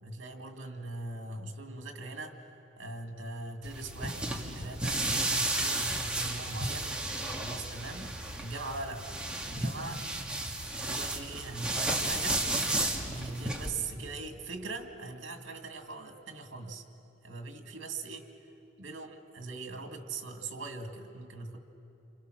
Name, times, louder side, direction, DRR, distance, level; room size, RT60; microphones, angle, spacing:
voice 1, 0.0-6.9 7.4-9.1 9.4-12.4 13.0-16.8 17.2-18.3 18.8-21.6, right 3 dB, 75° right, 4 dB, 2.3 m, -41 dB
sound 1, 3.6-13.7, right 2 dB, 5° right, 1.9 m, -33 dB
28.5 x 27.5 x 6.4 m, 2.8 s
head